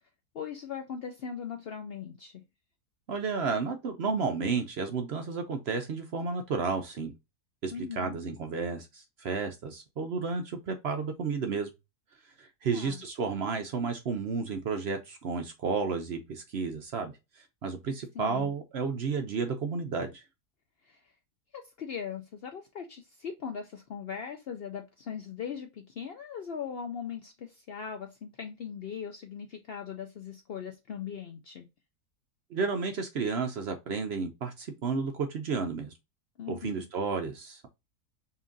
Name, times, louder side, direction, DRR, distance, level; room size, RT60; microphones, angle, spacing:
voice 1, 0.3-2.4 7.7-8.2 12.7-13.0 18.1-18.5 20.8-21.1 21.5-31.7 36.4-36.9, left 7 dB, 75° left, 0.5 m, -39 dB
voice 2, 3.1-7.1 7.6-11.7 12.4-20.2 32.5-35.9 36.5-37.7, right 5 dB, 60° right, 0.7 m, -32 dB
5.5 x 2.5 x 2.5 m
omnidirectional pair, 1.7 m